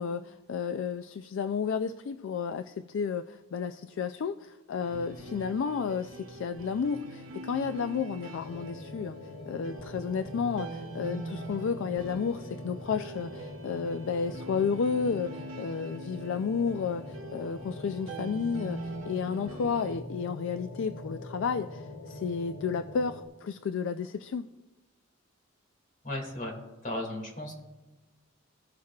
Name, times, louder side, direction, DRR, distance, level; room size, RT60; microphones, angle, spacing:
voice 1, 0.0-9.2 9.5-24.5, left 6 dB, 60° left, 9 dB, 0.3 m, -32 dB
sound 1, 4.8-20.0, right 2 dB, 70° right, 0.8 m, -43 dB
sound 2, 8.3-23.3, left 1 dB, 85° left, 0.9 m, -43 dB
voice 2, 26.0-26.5 26.8-27.6, left 1 dB, 40° left, -2 dB, 2.3 m, -35 dB
16.0 x 6.4 x 2.4 m, 1.2 s
head